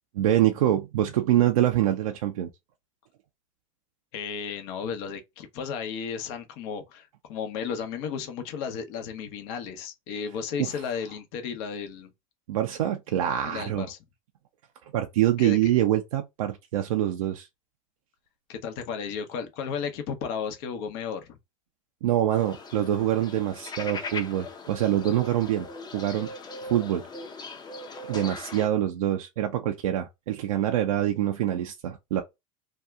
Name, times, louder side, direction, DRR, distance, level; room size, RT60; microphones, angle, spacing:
voice 1, 0.1-2.5 10.6-10.7 12.5-13.9 14.9-17.5 22.0-25.7 25.9-26.3 26.7-27.1 28.1-32.2, right 12 dB, 80° right, 0.5 m, -25 dB
voice 2, 4.1-12.1 13.4-14.0 15.4-15.6 18.5-21.4, left 6 dB, 60° left, 0.8 m, -34 dB
sound 1, 22.3-28.7, left 3 dB, 25° left, 0.7 m, -39 dB
2.7 x 2.3 x 3.4 m
hypercardioid pair, 95°, 18 cm